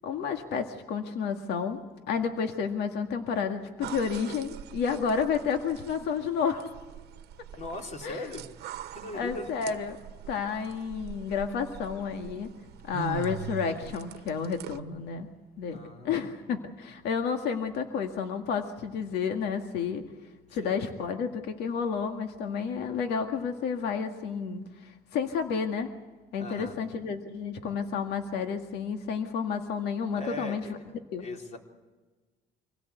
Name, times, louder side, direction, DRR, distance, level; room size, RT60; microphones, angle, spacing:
voice 1, 0.0-1.8 2.1-6.7 8.0-8.2 9.1-10.0 10.3-12.5 12.8-15.3 15.6-15.8 16.0-20.0 20.5-25.9 26.3-30.8 31.1-31.2, left 6 dB, 80° left, 5 dB, 1.9 m, -31 dB
sound 1, 3.8-14.8, right 11 dB, 75° right, 1.1 m, -43 dB
voice 2, 7.6-8.5 8.9-9.5 15.7-16.3 20.6-20.8 26.4-26.8 30.2-30.7 31.2-31.6, left 1 dB, 45° left, 2 dB, 3.9 m, -39 dB
26.0 x 17.5 x 8.2 m, 1.3 s
cardioid pair, 110°, 17 cm